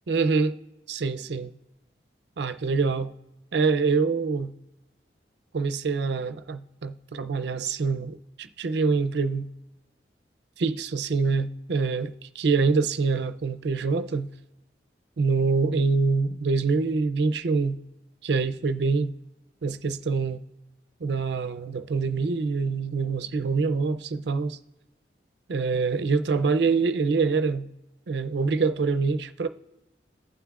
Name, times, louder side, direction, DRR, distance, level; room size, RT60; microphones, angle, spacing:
voice 1, 0.1-0.6 0.9-1.5 2.4-3.1 3.5-4.5 5.5-9.5 10.6-14.3 15.2-17.8 18.2-19.1 19.6-20.4 21.0-24.6 25.5-27.7 28.1-29.5, right 4 dB, 70° right, 0.5 m, -25 dB
15.5 x 5.7 x 2.4 m
head